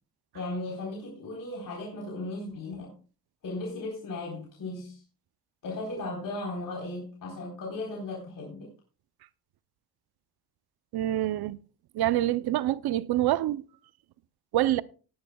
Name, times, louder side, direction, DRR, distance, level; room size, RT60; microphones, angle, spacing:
voice 1, 0.3-2.9 3.4-5.0 5.6-8.7, left 2 dB, 55° left, 4.0 m, -36 dB
voice 2, 10.9-11.6 11.9-13.6 14.5-14.8, right 14 dB, 70° right, 0.7 m, -26 dB
18.5 x 10.5 x 2.3 m
cardioid pair, 90°, 39 cm